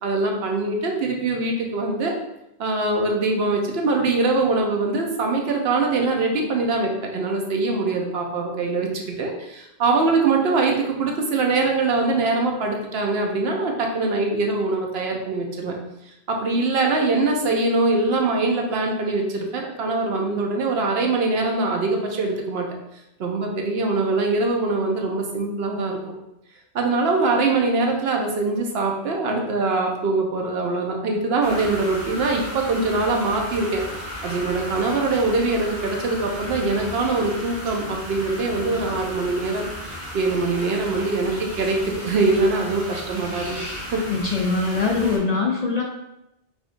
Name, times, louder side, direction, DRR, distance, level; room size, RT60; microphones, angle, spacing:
voice 1, 0.0-2.1 2.6-15.7 16.3-22.7 23.2-26.0 26.7-39.6 40.1-41.8 42.0-43.7 43.9-44.0, right 3 dB, 75° right, 1 dB, 0.9 m, -23 dB
sound 1, 31.4-45.2, equal, 25° right, 1.1 m, -35 dB
voice 2, 44.1-45.8, left 4 dB, 50° left, -1 dB, 0.6 m, -22 dB
4.9 x 2.5 x 2.5 m, 0.88 s
omnidirectional pair, 1.0 m